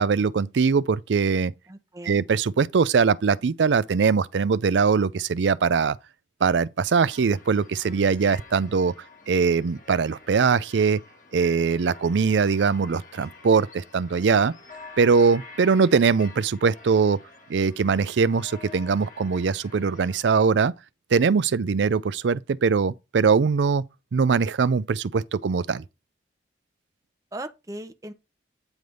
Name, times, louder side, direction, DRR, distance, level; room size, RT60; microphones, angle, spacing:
voice 1, 0.0-1.5 2.1-6.0 6.4-8.9 9.3-11.0 11.3-14.5 15.0-17.2 17.5-20.7 21.1-23.8 24.1-25.8, right 5 dB, 80° right, 0.4 m, -21 dB
voice 2, 1.7-2.2 27.3-28.1, right 1 dB, 20° right, 0.7 m, -38 dB
sound 1, 6.9-20.2, left 3 dB, 45° left, 1.5 m, -48 dB
9.1 x 3.3 x 5.3 m
head